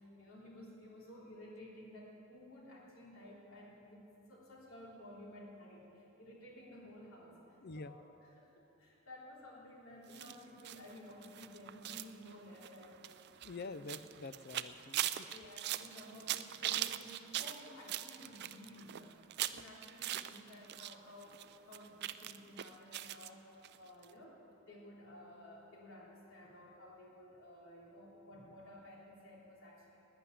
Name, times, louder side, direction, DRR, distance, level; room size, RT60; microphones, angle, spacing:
voice 1, 0.0-8.0 8.4-13.2 13.6-13.8 15.3-30.0, left 1 dB, 80° left, -3 dB, 3.3 m, -54 dB
voice 2, 7.6-8.0 13.4-15.3, left 3 dB, 50° left, 13 dB, 0.5 m, -47 dB
sound 1, 10.1-20.9 21.2-23.3 23.6-23.8 24.0-24.1, right 12 dB, 55° right, 0.4 m, -41 dB
12.0 x 9.5 x 9.7 m, 2.9 s
head